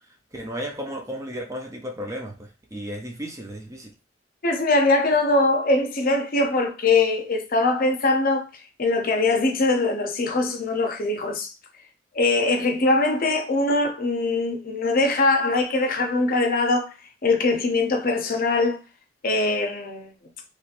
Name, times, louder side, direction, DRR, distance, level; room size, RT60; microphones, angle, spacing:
voice 1, 0.3-3.9, equal, 15° right, 0.5 m, -34 dB
voice 2, 4.4-8.5 8.8-11.5 12.1-16.9 17.2-18.8 19.2-20.1, left 2 dB, 50° left, 0.7 m, -22 dB
3.0 x 3.0 x 2.4 m
head